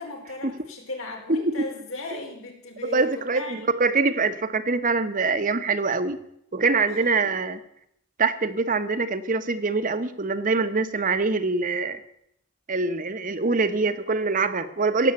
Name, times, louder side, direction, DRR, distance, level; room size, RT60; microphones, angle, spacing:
voice 1, 0.0-3.7 6.9-7.3, left 3 dB, 90° left, 1 dB, 4.3 m, -37 dB
voice 2, 2.8-6.2 6.5-7.6 8.2-12.0 12.7-15.1, right 3 dB, 40° right, 12 dB, 1.0 m, -24 dB
16.5 x 8.1 x 8.1 m, 0.75 s
head